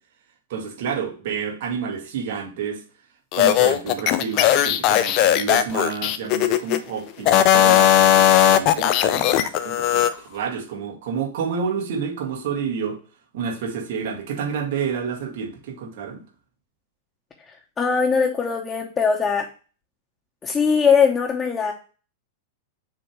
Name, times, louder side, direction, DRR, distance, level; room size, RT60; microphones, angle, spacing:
voice 1, 0.5-2.8 3.3-13.0 13.3-16.2, right 6 dB, 55° right, 1 dB, 1.9 m, -29 dB
sound 1, 3.3-6.8 7.2-10.1, left 11 dB, 40° left, 0.5 m, -17 dB
voice 2, 17.8-19.4 20.4-21.7, left 6 dB, 20° left, -2 dB, 1.0 m, -20 dB
7.2 x 2.8 x 4.8 m, 0.36 s
figure-of-eight pair, 95°, 0 cm